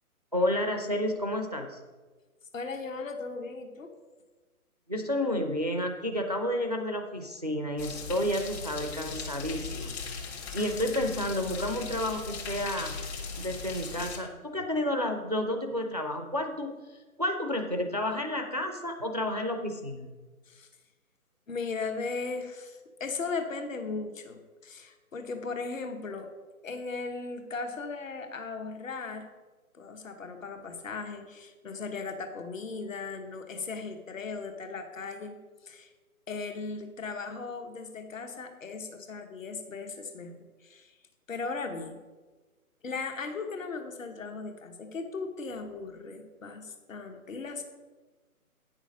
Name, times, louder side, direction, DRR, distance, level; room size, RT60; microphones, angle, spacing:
voice 1, 0.3-1.8 4.9-13.0 13.4-16.7 17.2-20.1, left 1 dB, 30° right, 4 dB, 0.4 m, -31 dB
voice 2, 2.5-3.9 20.5-20.7 21.5-26.3 26.6-29.3 29.7-35.9 36.3-41.0 41.3-42.0 42.8-47.6, left 4 dB, 60° left, 5 dB, 1.3 m, -37 dB
sound 1, 7.8-14.2, left 5 dB, 45° left, 1.4 m, -38 dB
8.8 x 6.3 x 5.0 m, 1.3 s
figure-of-eight pair, 145°, 44 cm